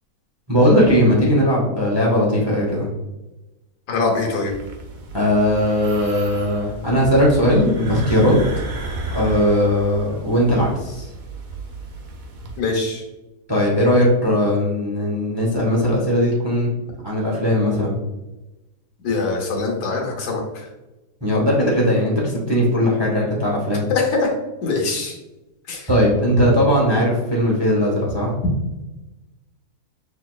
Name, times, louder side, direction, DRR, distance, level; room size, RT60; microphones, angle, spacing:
voice 1, 0.5-2.9 5.1-8.4 9.1-11.1 13.5-16.7 17.0-17.9 21.2-23.9 25.9-28.3, equal, 25° right, -3 dB, 0.7 m, -18 dB
voice 2, 3.9-4.5 12.6-13.0 19.0-20.7 23.9-24.3 24.6-25.2 25.7-25.9, left 3 dB, 80° left, 0 dB, 1.5 m, -23 dB
sound 1, 4.5-12.6, right 1 dB, 75° right, 0.4 m, -33 dB
5.7 x 3.1 x 2.3 m, 1.0 s
omnidirectional pair, 1.6 m